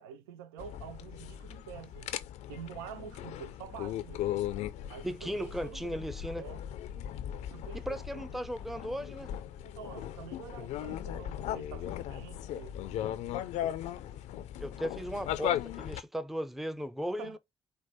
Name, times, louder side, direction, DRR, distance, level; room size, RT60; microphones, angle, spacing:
voice 1, 0.0-2.1 2.5-4.3 4.9-6.0 6.3-6.7 7.4-7.8 8.1-8.2 9.6-12.8 17.1-17.4, right 8 dB, 80° right, 0.4 m, -47 dB
sound 1, 0.6-16.0, left 11 dB, 65° left, 0.4 m, -38 dB
voice 2, 5.0-6.4 7.7-9.3 14.6-17.4, equal, ahead, 0.5 m, -36 dB
4.5 x 2.1 x 4.0 m
hypercardioid pair, 40°, 13 cm